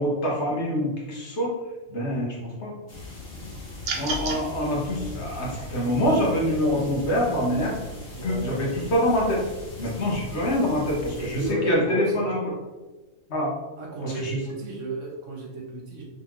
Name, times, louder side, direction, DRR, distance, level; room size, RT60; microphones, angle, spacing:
voice 1, 0.0-1.5 1.9-2.7 3.9-7.8 8.2-9.4 9.8-12.6 13.3-13.5 14.0-14.4, equal, 60° left, -3 dB, 1.2 m, -25 dB
sound 1, 2.9-11.5, left 2 dB, 85° left, 1.8 m, -40 dB
sound 2, 3.8-4.4, right 3 dB, 55° right, 0.8 m, -29 dB
voice 2, 8.1-8.4 11.0-12.0 13.8-16.0, right 3 dB, 75° right, -1 dB, 1.2 m, -34 dB
3.7 x 3.3 x 2.9 m, 1.2 s
omnidirectional pair, 1.3 m